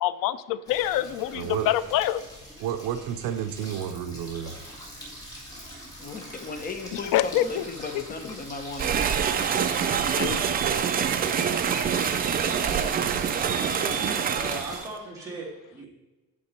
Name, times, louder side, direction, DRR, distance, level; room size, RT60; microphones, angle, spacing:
voice 1, 0.0-2.2 7.1-7.4 10.2-10.4, left 13 dB, 75° left, 15 dB, 0.5 m, -25 dB
sound 1, 0.7-14.8, equal, 10° left, 2.0 m, -42 dB
voice 2, 1.3-1.7 2.6-4.6 9.9-10.5, right 9 dB, 75° right, 8 dB, 0.6 m, -32 dB
voice 3, 6.0-8.9, left 3 dB, 25° left, 5 dB, 1.0 m, -36 dB
sound 2, 8.8-14.9, right 7 dB, 30° right, 0.4 m, -25 dB
voice 4, 13.4-15.9, right 2 dB, 10° right, -6 dB, 2.4 m, -38 dB
8.7 x 6.8 x 4.4 m, 1.1 s
cardioid pair, 175°, 33 cm